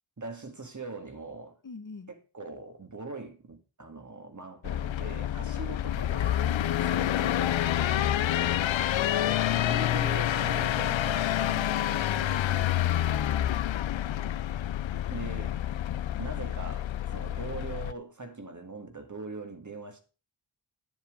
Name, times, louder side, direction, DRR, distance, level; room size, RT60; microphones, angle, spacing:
voice 1, 0.2-1.6 2.1-8.1 9.2-12.0 15.1-15.6 16.2-20.0, right 3 dB, 40° right, 2.0 m, -42 dB
voice 2, 1.6-2.1 5.4-6.0 6.5-7.1 8.1-9.1 12.1-13.7, left 4 dB, 45° left, 1.1 m, -44 dB
sound 1, 4.6-17.9, left 12 dB, 85° left, 0.5 m, -28 dB
10.0 x 7.3 x 5.0 m
wide cardioid pair, 75°, 45 cm